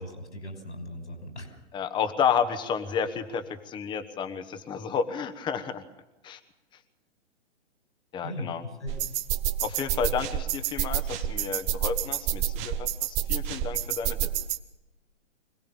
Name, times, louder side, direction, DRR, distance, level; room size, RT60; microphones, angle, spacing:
voice 1, 0.0-1.6 8.2-9.2, left 1 dB, 75° left, 4 dB, 5.8 m, -39 dB
voice 2, 1.7-5.8 6.2-6.4 8.1-8.6 9.6-14.3, left 7 dB, 15° left, 10 dB, 1.2 m, -31 dB
sound 1, 8.9-14.6, right 11 dB, 20° right, 0.8 m, -29 dB
25.5 x 18.0 x 7.1 m, 0.97 s
figure-of-eight pair, 120°, 35 cm